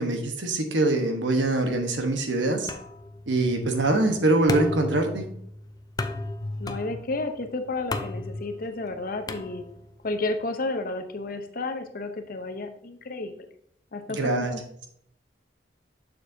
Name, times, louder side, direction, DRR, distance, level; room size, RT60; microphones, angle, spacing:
voice 1, 0.0-2.7 3.3-5.2 14.2-14.5, right 2 dB, 80° right, 4 dB, 1.1 m, -24 dB
sound 1, 2.7-10.1, left 2 dB, 20° left, 0.4 m, -35 dB
voice 2, 6.6-9.7 10.0-13.5 13.9-14.6, left 2 dB, 50° left, 7 dB, 0.7 m, -31 dB
6.6 x 6.6 x 2.7 m, 0.67 s
head